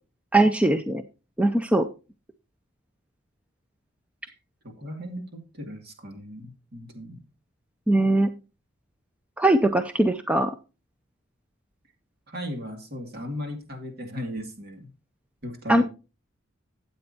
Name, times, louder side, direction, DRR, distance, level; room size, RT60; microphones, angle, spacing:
voice 1, 0.3-1.0 1.4-1.9 7.9-8.3 9.4-10.5 15.7-15.8, right 1 dB, 5° right, 0.5 m, -20 dB
voice 2, 4.6-7.3 12.3-14.9 15.4-15.8, equal, 50° right, 2.4 m, -36 dB
13.0 x 8.8 x 2.8 m
head